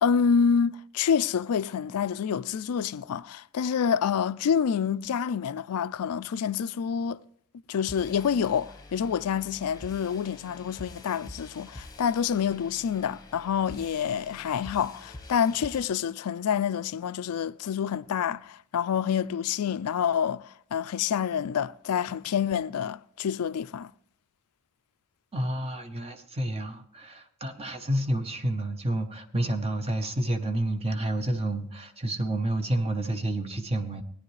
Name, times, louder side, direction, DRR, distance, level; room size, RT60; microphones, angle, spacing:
voice 1, 0.0-7.2 7.7-23.9, left 7 dB, 80° left, 0.4 m, -27 dB
sound 1, 7.9-15.8, left 2 dB, 15° left, 1.1 m, -47 dB
voice 2, 25.3-34.0, right 1 dB, 25° right, 0.9 m, -29 dB
17.5 x 10.0 x 3.2 m
head